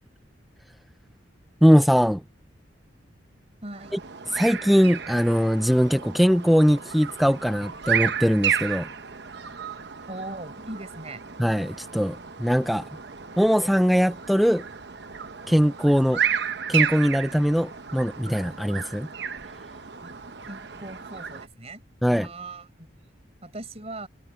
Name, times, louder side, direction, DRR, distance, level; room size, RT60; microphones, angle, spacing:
voice 1, 1.6-2.2 4.3-8.9 11.4-12.9 13.4-14.6 15.5-16.2 16.7-19.1 22.0-22.3, equal, ahead, 0.5 m, -21 dB
voice 2, 3.6-3.9 10.1-11.2 20.0-20.1 20.4-22.9 23.4-24.1, right 2 dB, 35° right, 5.0 m, -39 dB
sound 1, 3.7-21.5, right 8 dB, 65° right, 1.0 m, -32 dB
head